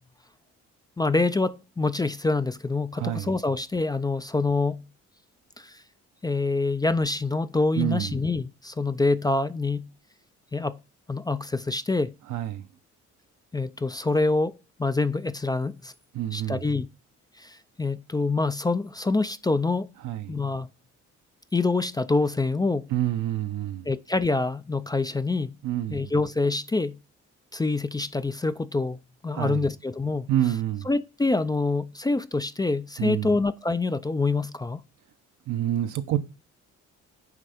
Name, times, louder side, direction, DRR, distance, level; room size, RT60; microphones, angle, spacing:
voice 1, 1.0-4.8 5.6-5.8 6.2-9.9 10.5-10.8 11.1-12.1 13.5-14.5 14.8-15.9 16.3-16.9 17.4-19.9 20.3-20.7 21.5-22.9 23.9-25.5 25.9-27.0 27.5-30.3 30.9-34.8, left 3 dB, 15° left, 0.4 m, -26 dB
voice 2, 2.9-3.4 7.8-8.3 12.3-12.7 16.1-16.7 20.0-20.4 22.9-23.9 25.6-26.1 29.3-29.7 30.3-30.9 33.0-33.3 35.5-36.2, right 12 dB, 80° right, 0.9 m, -28 dB
9.5 x 3.3 x 5.0 m
cardioid pair, 90°, 30 cm